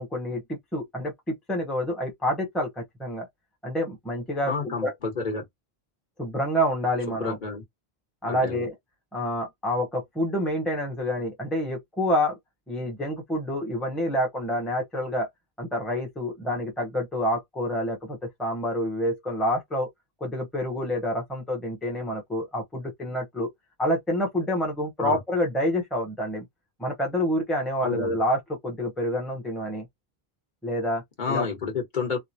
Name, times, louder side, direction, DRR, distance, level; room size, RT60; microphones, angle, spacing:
voice 1, 0.0-3.3 3.6-4.9 6.2-7.4 8.2-8.7 9.1-12.4 12.7-15.3 15.6-19.9 20.2-23.5 23.8-26.5 26.8-29.9 30.6-31.0 31.3-31.5, equal, ahead, 0.8 m, -28 dB
voice 2, 4.4-5.4 7.1-7.6 8.2-8.6 25.0-25.2 27.8-28.1 31.2-32.2, left 5 dB, 50° left, 1.3 m, -30 dB
3.1 x 2.0 x 2.7 m
omnidirectional pair, 1.0 m